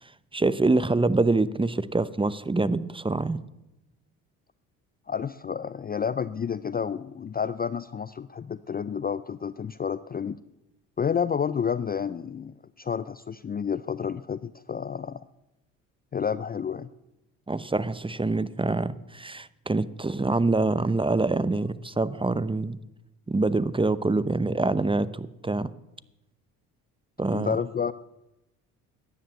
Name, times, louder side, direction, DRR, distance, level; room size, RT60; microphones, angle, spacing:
voice 1, 0.0-3.4 17.5-22.8 23.3-25.7 27.2-27.5, right 3 dB, 10° right, 17 dB, 0.7 m, -25 dB
voice 2, 5.1-10.4 11.0-15.2 16.1-16.9 27.3-27.9, left 7 dB, 25° left, 16 dB, 0.5 m, -30 dB
14.0 x 10.0 x 8.1 m, 0.95 s
hypercardioid pair, 60°, 41 cm